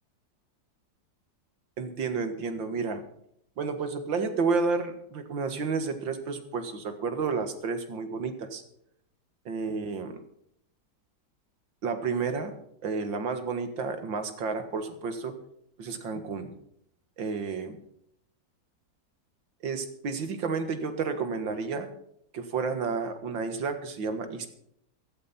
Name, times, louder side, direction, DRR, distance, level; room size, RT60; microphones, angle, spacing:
voice 1, 1.8-3.0 3.6-8.6 9.5-10.2 11.8-12.6 12.8-15.3 15.8-16.5 17.2-17.8 19.6-21.9 22.3-24.5, right 4 dB, 85° right, 8 dB, 2.4 m, -31 dB
15.0 x 13.0 x 4.3 m, 0.73 s
omnidirectional pair, 2.0 m